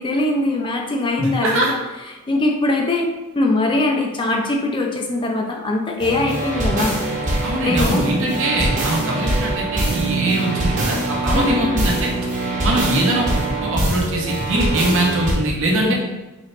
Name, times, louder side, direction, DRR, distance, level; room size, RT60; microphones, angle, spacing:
voice 1, 0.0-1.8 2.0-3.1 3.4-7.0 7.6-8.0 11.3-11.8 15.8-16.0, left 2 dB, 20° left, 1 dB, 0.4 m, -21 dB
voice 2, 1.2-1.7 7.4-12.1 12.6-16.0, right 1 dB, 60° right, -1 dB, 0.8 m, -22 dB
sound 1, 6.0-15.3, right 2 dB, 35° right, 1.0 m, -23 dB
4.1 x 3.0 x 3.1 m, 1.1 s
head